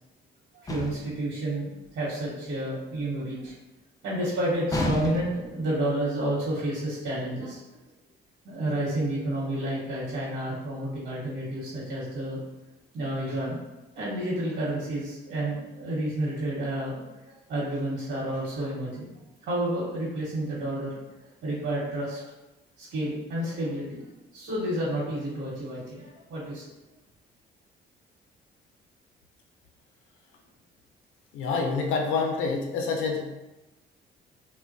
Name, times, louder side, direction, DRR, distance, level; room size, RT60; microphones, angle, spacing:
voice 1, 0.6-3.6 4.0-7.6 8.4-12.4 12.9-13.6 13.9-19.1 19.4-20.9 21.2-22.2 22.8-24.0 24.3-26.6, right 1 dB, 70° right, -8 dB, 1.0 m, -30 dB
sound 1, 0.7-1.2 4.7-5.5, left 2 dB, 20° left, 0.4 m, -30 dB
voice 2, 31.3-33.2, left 4 dB, 85° left, 1 dB, 0.5 m, -27 dB
3.2 x 2.1 x 2.5 m, 1.0 s
cardioid pair, 90°, 20 cm